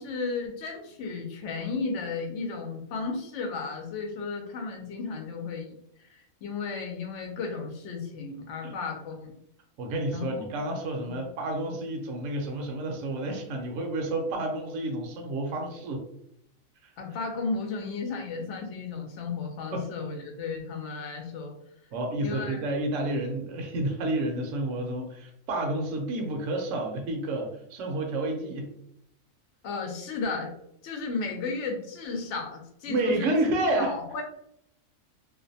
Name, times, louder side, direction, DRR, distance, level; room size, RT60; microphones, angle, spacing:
voice 1, 0.0-9.3 10.1-10.4 11.0-11.2 17.0-21.5 22.2-22.6 29.6-30.5 30.8-33.3 33.8-34.2, left 4 dB, 65° left, 2 dB, 0.9 m, -34 dB
voice 2, 9.8-16.0 16.8-16.9 19.7-19.8 21.9-28.7 32.9-34.0, right 2 dB, 70° right, 2 dB, 0.9 m, -30 dB
2.4 x 2.1 x 2.6 m, 0.75 s
omnidirectional pair, 1.4 m